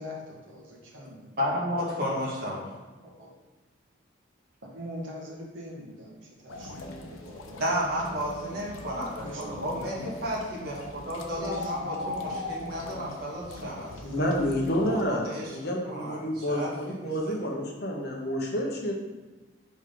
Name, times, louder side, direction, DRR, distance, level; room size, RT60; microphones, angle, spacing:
voice 1, 0.0-1.2 3.0-3.3 4.6-8.3 9.2-9.9 11.3-12.3, equal, 70° right, -4 dB, 1.5 m, -42 dB
voice 2, 1.4-2.7 7.6-14.3 14.9-17.3, equal, 50° right, -5 dB, 1.6 m, -33 dB
sound 1, 6.5-15.0, left 2 dB, 90° left, 0.7 m, -40 dB
voice 3, 14.0-18.9, equal, 50° left, -1 dB, 1.0 m, -29 dB
5.3 x 4.8 x 3.8 m, 1.2 s
head